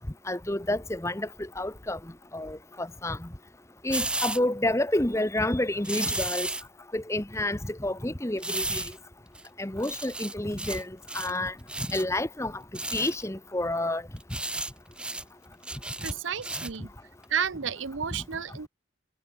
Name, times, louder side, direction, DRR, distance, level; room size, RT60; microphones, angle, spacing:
voice 1, 0.3-2.0 2.3-3.3 3.8-6.5 6.9-8.9 9.6-11.5 11.9-12.6 12.9-14.0, left 1 dB, 15° left, 1.1 m, -29 dB
sound 1, 3.9-4.4 5.8-6.6 8.4-9.0 9.4-9.5 9.8-10.8 11.1-11.4 11.7-12.0 12.7-13.2 14.2-14.7 15.0-15.2 15.6-16.8 17.2-17.3, right 2 dB, 5° right, 2.2 m, -33 dB
voice 2, 16.0-16.9 17.3-18.7, right 7 dB, 80° right, 0.8 m, -31 dB
head